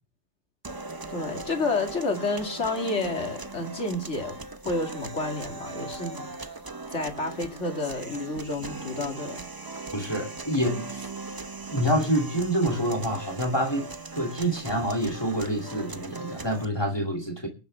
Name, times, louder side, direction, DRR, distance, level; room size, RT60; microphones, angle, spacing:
sound 1, 0.6-16.6, right 3 dB, 25° right, 0.6 m, -39 dB
voice 1, 1.1-4.3 4.6-6.3 6.9-9.5, left 3 dB, 60° left, 2.7 m, -30 dB
voice 2, 9.9-11.0 11.7-17.5, equal, 20° left, 2.5 m, -27 dB
22.5 x 10.0 x 3.4 m
omnidirectional pair, 1.3 m